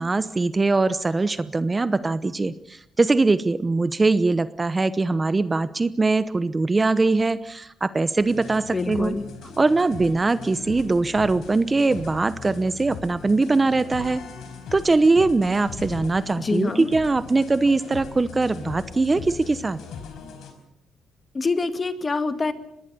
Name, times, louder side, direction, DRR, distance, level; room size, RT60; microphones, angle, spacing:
voice 1, 0.0-9.1 9.6-14.2 14.7-19.8, right 3 dB, 25° right, 14 dB, 0.9 m, -22 dB
sound 1, 8.2-20.5, left 6 dB, 75° left, 4.7 m, -39 dB
voice 2, 8.7-9.3 16.4-16.9 21.3-22.5, left 3 dB, 30° left, 10 dB, 2.0 m, -25 dB
25.0 x 20.5 x 6.9 m, 0.74 s
cardioid pair, 90°, 0 cm